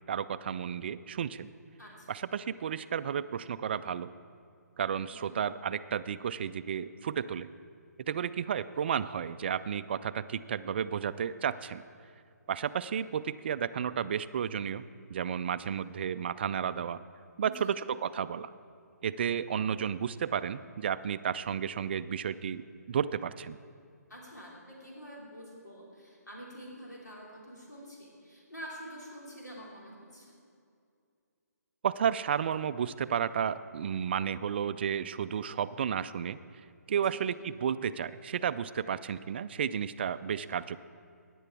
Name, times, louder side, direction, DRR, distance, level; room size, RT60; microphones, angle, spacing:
voice 1, 0.1-1.5 2.1-4.1 4.8-7.5 8.1-11.8 12.5-14.8 15.1-17.0 17.4-18.5 19.0-23.6 31.8-36.4 36.9-40.8, right 8 dB, 40° right, 14 dB, 0.4 m, -32 dB
voice 2, 17.4-17.8 24.1-30.4 36.9-37.2, equal, 80° left, -3 dB, 3.1 m, -47 dB
15.0 x 10.0 x 4.6 m, 2.4 s
figure-of-eight pair, 140°, 9 cm